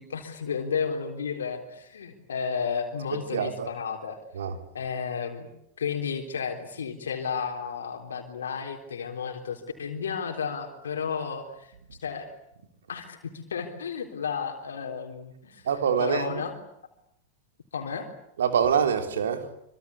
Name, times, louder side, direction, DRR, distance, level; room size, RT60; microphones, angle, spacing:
voice 1, 0.0-4.2 4.7-5.5 5.8-11.7 12.0-12.3 12.9-15.7 16.0-16.5 17.7-18.1, left 6 dB, 80° left, 3.8 m, -32 dB
voice 2, 3.1-3.7 4.3-4.6 11.9-12.0 15.6-16.4 18.4-19.5, right 7 dB, 75° right, 3.5 m, -25 dB
25.5 x 25.0 x 8.4 m
hypercardioid pair, 95°, 0 cm